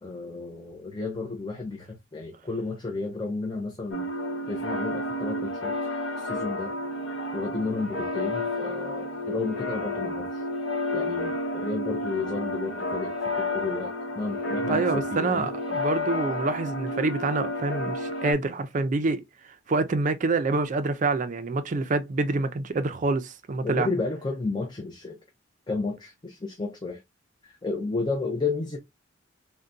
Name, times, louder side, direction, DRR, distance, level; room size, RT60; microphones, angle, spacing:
voice 1, 0.0-4.1 4.5-5.9 6.2-6.8 7.3-10.4 10.9-15.5 23.6-25.2 25.7-27.0 27.4-28.8, left 3 dB, 20° left, 0.5 m, -32 dB
sound 1, 3.9-18.3, left 1 dB, 70° left, 0.8 m, -31 dB
voice 2, 14.7-19.2 19.7-23.9, right 3 dB, 40° right, 0.4 m, -26 dB
3.8 x 2.2 x 2.4 m
head